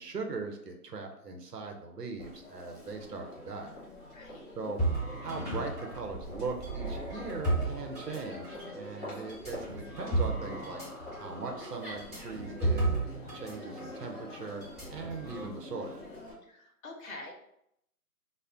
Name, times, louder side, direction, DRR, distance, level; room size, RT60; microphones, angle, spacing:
voice 1, 0.0-3.7 4.6-4.8 5.2-10.8 11.2-12.9 13.3-14.6 14.9-16.0, right 4 dB, 90° right, 3 dB, 0.8 m, -39 dB
Crowd, 2.2-16.3, left 1 dB, 15° left, 1.0 m, -45 dB
voice 2, 4.1-4.5 8.5-8.9 16.4-17.3, left 2 dB, 60° left, 1 dB, 0.7 m, -47 dB
sound 1, 4.8-8.6 9.3-13.5 13.8-14.0 14.6-15.4, right 2 dB, 5° right, 1.2 m, -33 dB
2.4 x 2.1 x 3.6 m, 0.75 s
figure-of-eight pair, 145°, 46 cm